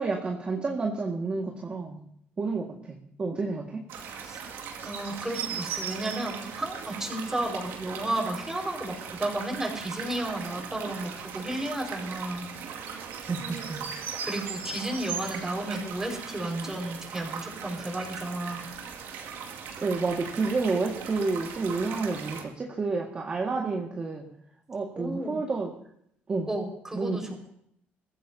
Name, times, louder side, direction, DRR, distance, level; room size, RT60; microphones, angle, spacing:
voice 1, 0.0-2.0 2.4-3.9 13.3-13.8 19.8-24.3 24.7-25.7 26.3-26.5 26.9-27.2, right 3 dB, 30° right, -1 dB, 1.9 m, -30 dB
sound 1, 3.9-22.4, right 6 dB, 75° right, 2.3 m, -38 dB
voice 2, 4.8-8.9 9.2-12.5 14.2-18.7 25.0-25.4 26.5-27.5, right 1 dB, 10° right, 0 dB, 5.2 m, -33 dB
22.5 x 15.0 x 2.8 m, 0.70 s
cardioid pair, 120°, 4 cm